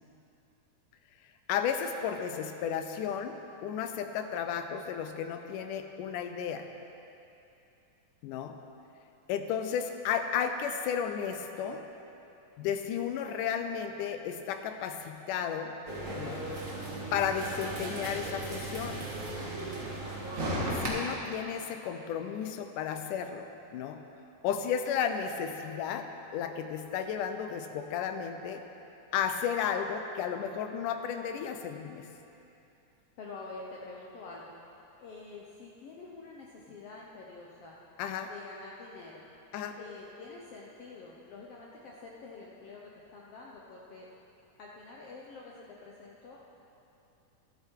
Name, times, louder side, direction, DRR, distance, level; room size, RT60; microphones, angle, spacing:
voice 1, 1.5-3.4 3.6-6.7 8.2-8.6 9.3-11.8 12.6-15.7 16.2-16.5 17.1-19.0 20.7-24.0 24.4-28.6 29.1-32.1 38.0-38.3 39.5-39.8, left 8 dB, 90° left, 7 dB, 2.3 m, -33 dB
sound 1, 15.9-20.9, right 1 dB, 30° right, 1.6 m, -36 dB
voice 2, 33.2-34.7 35.0-37.8 38.3-39.2 39.8-42.8 43.1-44.1 44.6-46.4, left 3 dB, 70° left, -3 dB, 1.5 m, -47 dB
12.0 x 11.5 x 4.5 m, 2.8 s
omnidirectional pair, 3.6 m